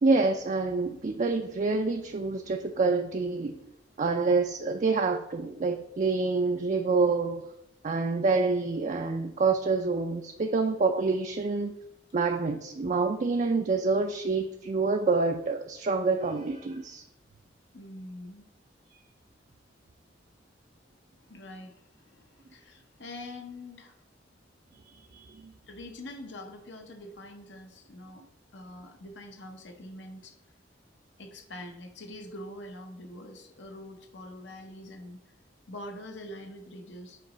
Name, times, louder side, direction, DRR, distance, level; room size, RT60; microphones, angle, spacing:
voice 1, 0.0-3.6 4.0-7.4 7.8-11.8 12.1-17.0 25.1-25.5, right 3 dB, 40° right, 5 dB, 0.4 m, -27 dB
voice 2, 17.7-18.5 21.1-24.0 25.7-28.2 28.5-30.3 31.2-35.2 35.7-37.2, left 1 dB, 75° left, 4 dB, 0.9 m, -44 dB
7.8 x 3.1 x 5.1 m, 0.83 s
head